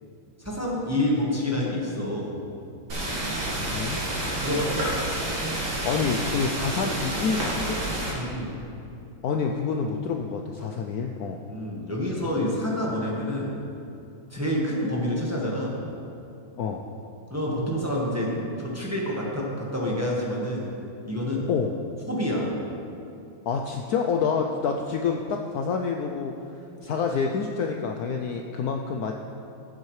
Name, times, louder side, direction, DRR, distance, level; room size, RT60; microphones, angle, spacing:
voice 1, 0.4-2.4 4.2-4.9 8.1-8.6 11.5-13.6 14.3-15.8 17.3-20.7 21.0-21.5 22.1-22.5, left 1 dB, 10° right, -4 dB, 1.1 m, -28 dB
sound 1, 2.9-8.1, right 1 dB, 70° right, 2.8 m, -29 dB
voice 2, 5.5-7.8 9.2-11.4 16.6-16.8 21.5-21.7 23.5-26.3 26.8-29.1, left 5 dB, 85° left, 2 dB, 0.8 m, -27 dB
16.0 x 7.5 x 3.2 m, 2.6 s
omnidirectional pair, 2.2 m